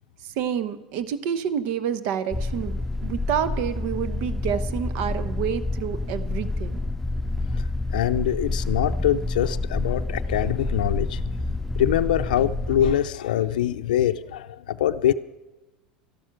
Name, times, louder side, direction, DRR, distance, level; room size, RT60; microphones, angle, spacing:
voice 1, 0.2-6.8, right 8 dB, 60° right, 13 dB, 0.9 m, -28 dB
sound 1, 2.3-12.9, left 2 dB, 5° left, 0.5 m, -28 dB
voice 2, 7.5-11.2 11.8-15.1, left 11 dB, 75° left, 8 dB, 0.5 m, -24 dB
13.5 x 12.0 x 5.9 m, 1.1 s
hypercardioid pair, 85°, 4 cm